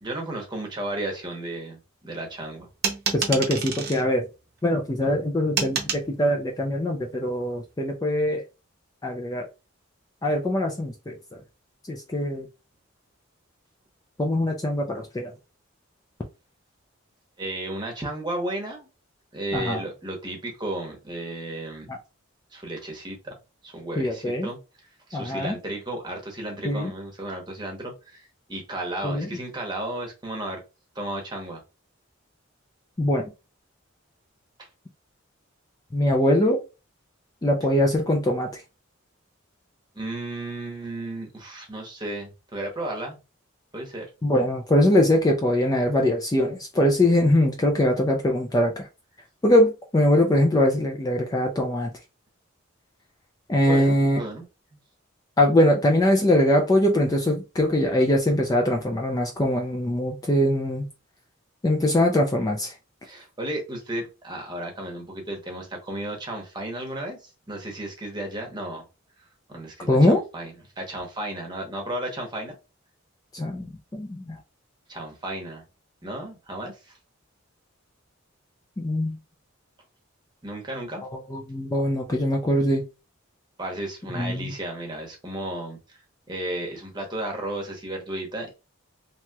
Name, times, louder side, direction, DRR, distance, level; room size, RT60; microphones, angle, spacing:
voice 1, 0.0-2.7 17.4-18.9 19.3-21.9 22.5-23.3 23.6-24.6 25.1-30.6 30.9-31.6 34.6-34.7 39.9-43.2 43.7-44.1 53.6-54.4 63.0-68.9 69.5-72.5 74.9-75.6 76.0-77.0 80.4-81.0 83.6-86.0 86.3-88.5, right 1 dB, 20° right, 0.9 m, -34 dB
sound 1, 2.8-4.0 5.6-6.1, right 6 dB, 50° right, 0.7 m, -27 dB
voice 2, 3.1-4.3 4.6-8.4 9.0-9.5 10.2-11.1 11.9-12.5 14.2-15.3 19.5-19.8 21.9-22.0 24.0-24.5 25.1-25.5 26.6-26.9 29.0-29.3 33.0-33.3 35.9-36.6 37.4-38.5 44.2-48.9 49.4-51.9 53.5-54.2 55.4-60.9 61.6-62.7 69.9-70.2 73.3-74.4 78.8-79.2 81.3-82.8 84.2-84.5, left 1 dB, 20° left, 0.4 m, -22 dB
2.9 x 2.9 x 2.3 m
head